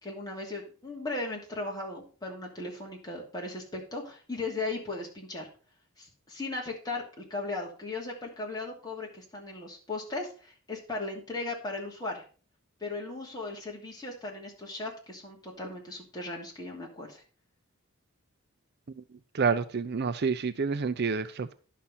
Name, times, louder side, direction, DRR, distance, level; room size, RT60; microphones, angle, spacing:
voice 1, 0.0-5.5 6.0-12.2 12.8-17.2, left 2 dB, 20° left, 2.7 m, -37 dB
voice 2, 19.3-21.5, right 5 dB, 45° right, 0.5 m, -28 dB
11.0 x 5.8 x 5.6 m
head